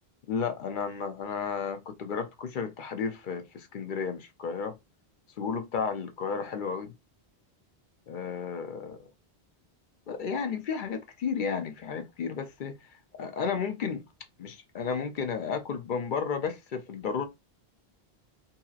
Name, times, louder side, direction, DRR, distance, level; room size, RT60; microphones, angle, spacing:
voice 1, 0.3-4.8 5.4-6.9 8.1-9.0 10.1-14.0 14.4-17.2, left 6 dB, 60° left, 0.6 m, -33 dB
2.8 x 2.7 x 2.4 m
omnidirectional pair, 1.1 m